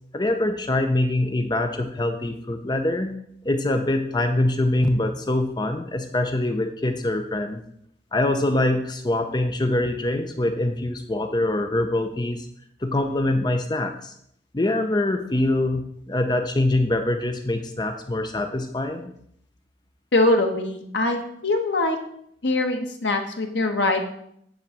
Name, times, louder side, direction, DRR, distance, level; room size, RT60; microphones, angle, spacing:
voice 1, 0.1-3.2 3.4-7.6 8.1-12.5 12.8-14.1 14.5-19.1, left 1 dB, 25° left, 6 dB, 0.6 m, -24 dB
voice 2, 20.1-22.0 22.4-24.1, left 2 dB, 75° left, 4 dB, 1.4 m, -23 dB
10.5 x 4.0 x 7.2 m, 0.70 s
head